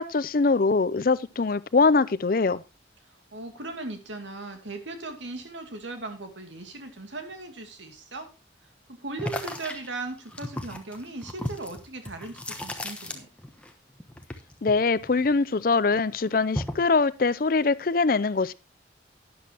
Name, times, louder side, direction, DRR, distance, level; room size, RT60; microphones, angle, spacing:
voice 1, 0.0-2.6 14.6-18.5, left 4 dB, 50° left, 0.5 m, -23 dB
voice 2, 3.3-8.3 8.9-13.3, right 2 dB, 85° right, 2.4 m, -38 dB
sound 1, 9.2-13.7 14.0-15.6 15.9-16.9, left 1 dB, 5° left, 1.1 m, -35 dB
12.0 x 10.5 x 2.9 m
head